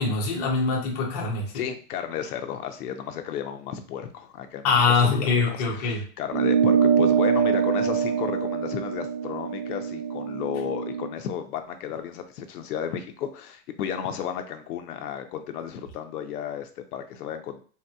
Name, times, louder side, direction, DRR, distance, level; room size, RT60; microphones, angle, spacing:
voice 1, 0.0-1.5 4.6-6.0, left 4 dB, 25° left, -2 dB, 0.5 m, -23 dB
voice 2, 1.5-17.6, left 9 dB, 70° left, 7 dB, 0.6 m, -33 dB
sound 1, 6.3-11.1, right 7 dB, 65° right, 0.6 m, -24 dB
3.4 x 2.8 x 2.2 m, 0.41 s
supercardioid pair, 170°, 47 cm